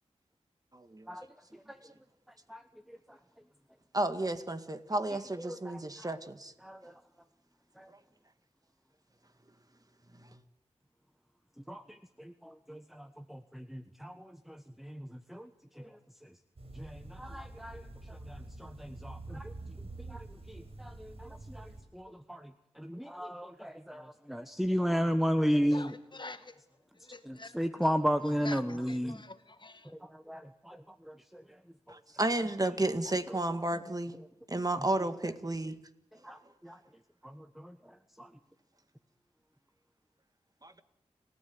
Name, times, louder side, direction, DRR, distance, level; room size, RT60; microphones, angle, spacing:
voice 1, 0.7-1.1 3.9-6.5 31.9-34.1 34.5-35.8 40.6-40.8, right 2 dB, 30° right, 9 dB, 1.9 m, -32 dB
voice 2, 5.4-6.1 6.6-7.0 7.8-7.9 11.7-15.5 15.8-15.9 16.7-17.8 18.1-19.5 20.1-26.0 27.2-29.2 30.1-31.4 36.2-36.8 37.2-38.3, equal, ahead, 9 dB, 1.3 m, -35 dB
sound 1, 16.6-21.8, right 2 dB, 55° right, 7.1 m, -46 dB
voice 3, 25.7-26.5 27.1-27.5 28.4-29.9, left 3 dB, 40° left, 11 dB, 1.7 m, -46 dB
30.0 x 14.0 x 9.6 m, 0.80 s
cardioid pair, 45°, 12 cm